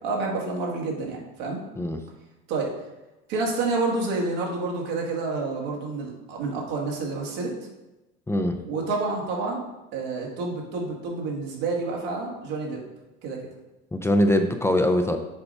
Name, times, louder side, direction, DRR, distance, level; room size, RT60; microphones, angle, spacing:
voice 1, 0.0-1.6 2.5-2.8 3.3-7.5 8.6-9.6 9.9-12.8 13.2-13.5, right 3 dB, 75° right, -1 dB, 2.1 m, -29 dB
voice 2, 8.3-8.6 13.9-15.2, left 1 dB, 10° left, 5 dB, 0.5 m, -22 dB
7.1 x 4.1 x 5.4 m, 1.0 s
supercardioid pair, 100°, 31 cm